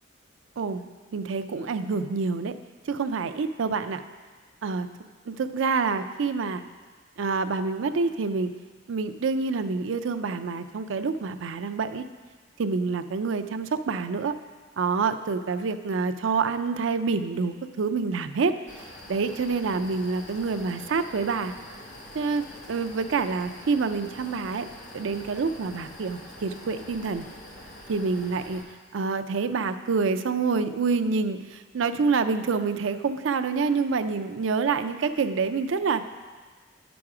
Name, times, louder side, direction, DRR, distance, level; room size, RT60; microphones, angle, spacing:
voice 1, 1.1-2.5 2.9-4.0 4.6-4.9 5.3-6.6 7.2-8.5 8.9-12.0 12.6-14.4 14.8-18.5 19.1-21.5 22.1-22.4 22.7-24.7 24.9-27.3 27.9-28.6 28.9-36.0, right 4 dB, 75° right, 9 dB, 0.4 m, -27 dB
sound 1, 18.7-28.6, left 1 dB, 40° left, 1.3 m, -45 dB
9.6 x 6.0 x 4.8 m, 1.4 s
head